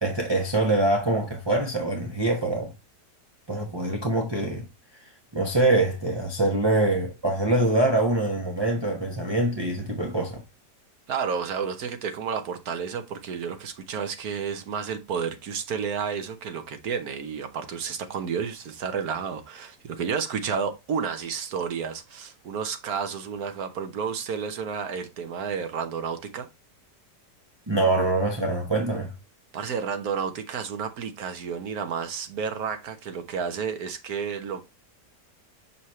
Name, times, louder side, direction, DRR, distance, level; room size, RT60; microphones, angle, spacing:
voice 1, 0.0-2.7 3.5-4.7 5.3-10.4 27.7-29.1, right 2 dB, 20° right, 0.8 m, -24 dB
voice 2, 11.1-26.5 29.5-34.6, right 6 dB, 65° right, 1.3 m, -31 dB
6.1 x 5.7 x 3.1 m
omnidirectional pair, 1.9 m